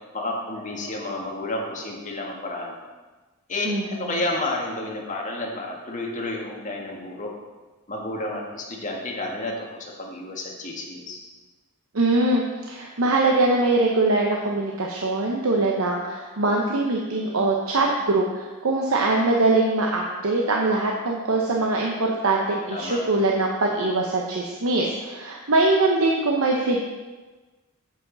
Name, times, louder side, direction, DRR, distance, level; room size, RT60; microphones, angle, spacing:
voice 1, 0.1-2.8 3.5-7.3 7.9-11.2 22.7-23.0, left 2 dB, 35° left, -1 dB, 1.7 m, -31 dB
voice 2, 3.6-4.1 11.9-26.8, right 2 dB, 70° right, -1 dB, 0.9 m, -22 dB
8.9 x 8.4 x 4.0 m, 1.3 s
head